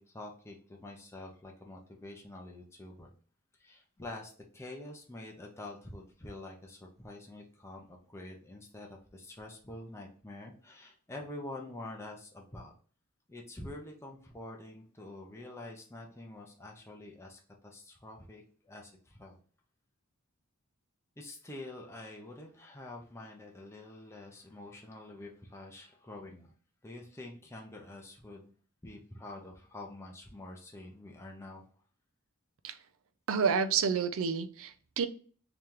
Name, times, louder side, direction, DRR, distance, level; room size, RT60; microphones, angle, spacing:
voice 1, 0.0-3.1 3.6-12.7 13.3-19.4 21.2-26.5 26.8-28.5 28.8-31.6, left 2 dB, 10° left, 0 dB, 0.6 m, -47 dB
voice 2, 33.3-35.1, right 6 dB, 65° right, 11 dB, 0.5 m, -29 dB
3.3 x 2.9 x 3.6 m, 0.42 s
head